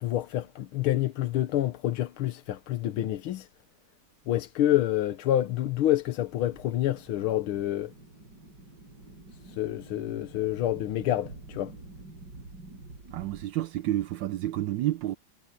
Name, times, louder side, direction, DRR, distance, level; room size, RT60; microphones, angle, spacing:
voice 1, 0.0-3.5 4.3-7.9 9.4-11.7, left 13 dB, 90° left, 1.8 m, -28 dB
sound 1, 6.3-13.5, right 2 dB, 55° right, 5.9 m, -48 dB
voice 2, 13.1-15.2, right 14 dB, 75° right, 1.2 m, -30 dB
omnidirectional pair, 2.3 m